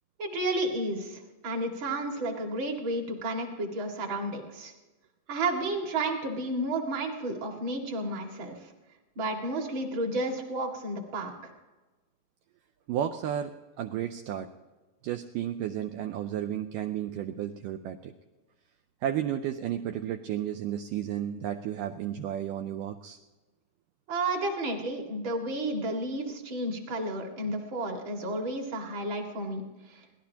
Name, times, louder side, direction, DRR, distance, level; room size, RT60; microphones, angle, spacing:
voice 1, 0.2-4.7 5.3-8.7 9.2-11.5 24.1-30.0, right 2 dB, 40° right, 2 dB, 2.2 m, -32 dB
voice 2, 12.9-14.5 15.0-18.1 19.0-23.2, right 10 dB, 80° right, 6 dB, 1.9 m, -33 dB
24.0 x 17.5 x 2.9 m, 1.2 s
omnidirectional pair, 4.4 m